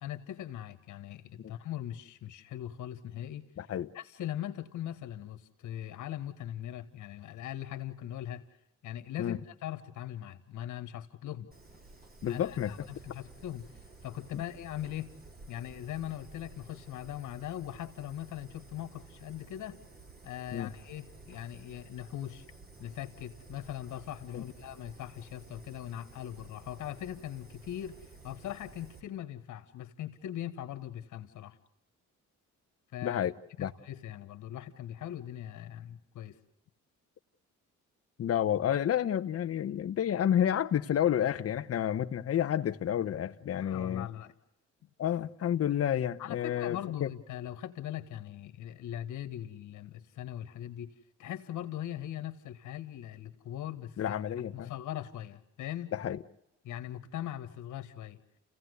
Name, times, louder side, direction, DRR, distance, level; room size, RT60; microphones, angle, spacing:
voice 1, 0.0-3.5 3.9-8.4 8.8-11.5 12.2-13.7 14.0-15.1 15.5-19.8 20.2-22.5 22.8-28.0 28.2-31.6 32.9-33.2 33.6-36.4 43.5-44.3 46.2-50.9 51.2-54.2 54.5-55.9 56.6-58.2, left 12 dB, 80° left, 1.9 m, -40 dB
voice 2, 3.6-3.9 9.2-9.4 12.2-12.9 14.3-14.4 20.5-20.7 24.3-24.4 33.0-33.7 38.2-44.1 45.0-47.1 54.0-54.7 55.9-56.2, left 10 dB, 50° left, 1.0 m, -30 dB
Fire, 11.5-29.0, right 3 dB, 30° right, 4.0 m, -53 dB
29.5 x 16.5 x 8.1 m
cardioid pair, 90°, 30 cm